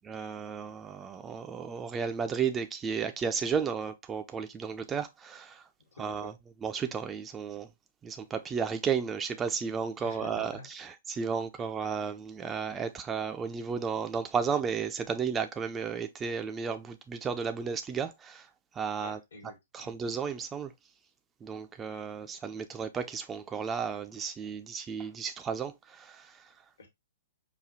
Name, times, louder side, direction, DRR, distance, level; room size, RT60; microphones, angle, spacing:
voice 1, 0.1-5.6 6.0-6.3 6.6-7.7 8.0-18.5 18.7-19.2 19.7-20.7 21.4-26.5, right 6 dB, 15° right, 0.3 m, -33 dB
voice 2, 5.9-6.3 10.0-10.7 11.6-11.7 19.0-19.9 26.8-26.9, left 3 dB, 65° left, 1.2 m, -48 dB
4.9 x 2.3 x 2.6 m
figure-of-eight pair, 115°, 0 cm